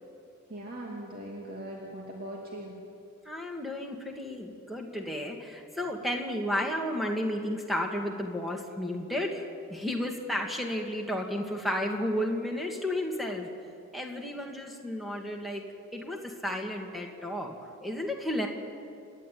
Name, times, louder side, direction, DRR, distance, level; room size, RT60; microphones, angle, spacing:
voice 1, 0.5-2.7, right 1 dB, 45° right, -3 dB, 2.6 m, -40 dB
voice 2, 3.3-9.4 9.7-13.5 13.9-15.6 15.9-17.5 17.8-18.5, left 1 dB, ahead, 1 dB, 2.1 m, -32 dB
29.0 x 12.0 x 9.3 m, 2.5 s
head